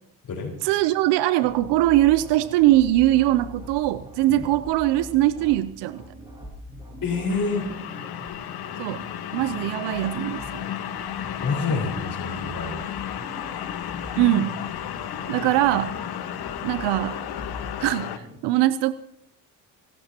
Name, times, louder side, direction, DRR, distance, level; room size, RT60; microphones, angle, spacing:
voice 1, 0.6-6.0 8.8-9.0 9.3-10.6 14.2-14.5 15.3-15.9 16.6-17.2 17.8-18.1 18.4-18.9, right 15 dB, 75° right, 15 dB, 0.7 m, -21 dB
sound 1, 1.4-18.4, left 1 dB, 10° right, 7.2 m, -42 dB
voice 2, 7.0-7.7 11.4-12.8, left 4 dB, 40° left, -5 dB, 4.9 m, -27 dB
sound 2, 7.3-18.2, left 10 dB, 60° left, 1.4 m, -33 dB
29.5 x 12.0 x 2.9 m, 0.77 s
supercardioid pair, 70°, 42 cm